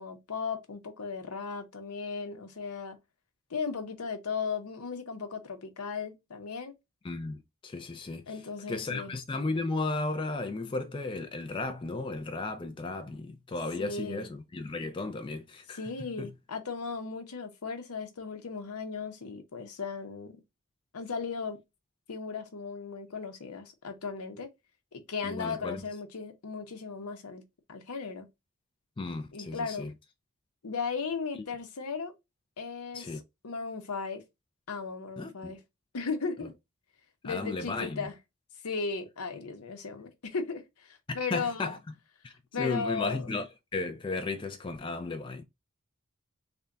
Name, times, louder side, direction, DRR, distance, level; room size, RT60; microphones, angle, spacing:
voice 1, 0.0-3.0 3.5-6.7 8.3-9.1 13.8-14.3 15.7-20.4 20.9-21.6 22.1-24.5 24.9-28.3 29.3-29.9 30.6-32.1 32.6-34.2 34.7-35.6 35.9-36.5 37.2-38.2 38.6-41.7 42.5-43.3, left 5 dB, 85° left, 0.8 m, -36 dB
voice 2, 7.0-8.2 8.7-15.8 16.2-16.3 25.2-25.8 29.0-29.9 32.9-33.2 35.2-35.5 37.2-38.0 41.1-41.8 42.2-43.5 43.7-45.4, left 3 dB, 20° left, 0.3 m, -34 dB
3.4 x 2.2 x 3.8 m
head